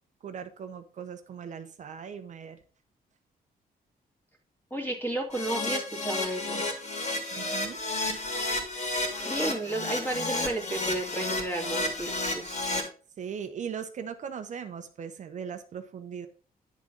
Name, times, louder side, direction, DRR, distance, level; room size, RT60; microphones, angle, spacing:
voice 1, 0.2-2.6 7.3-7.8 13.2-16.3, right 7 dB, 50° right, 8 dB, 0.8 m, -39 dB
voice 2, 4.7-6.7 9.2-12.5, right 1 dB, 10° left, 1 dB, 2.1 m, -32 dB
Keyboard (musical), 5.3-12.8, left 2 dB, 45° left, 2.3 m, -31 dB
10.5 x 3.7 x 5.2 m, 0.38 s
cardioid pair, 155°, 16 cm